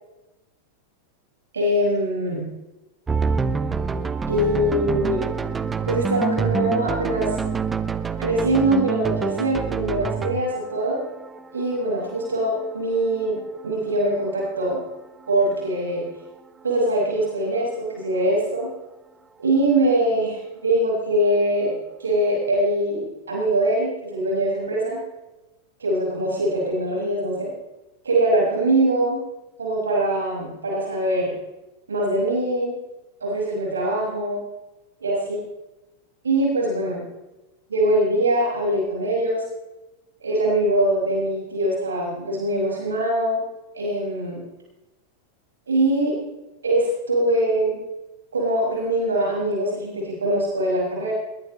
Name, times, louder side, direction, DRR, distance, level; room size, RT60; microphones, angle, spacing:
voice 1, 1.5-2.5 4.3-5.2 5.9-7.4 8.2-11.0 11.5-13.4 13.6-14.8 15.3-16.0 16.6-18.7 19.4-21.7 22.0-25.0 25.8-27.5 28.0-29.2 29.6-31.3 31.9-32.7 33.2-34.4 35.0-35.4 36.2-37.0 37.7-39.4 40.2-43.4 43.7-44.4 45.7-46.1 46.6-47.8 48.3-51.1, right 1 dB, 70° right, -3 dB, 6.4 m, -22 dB
sound 1, 3.1-15.7, right 5 dB, 15° right, 0.9 m, -27 dB
20.5 x 19.5 x 3.3 m, 1.0 s
figure-of-eight pair, 90°, 0 cm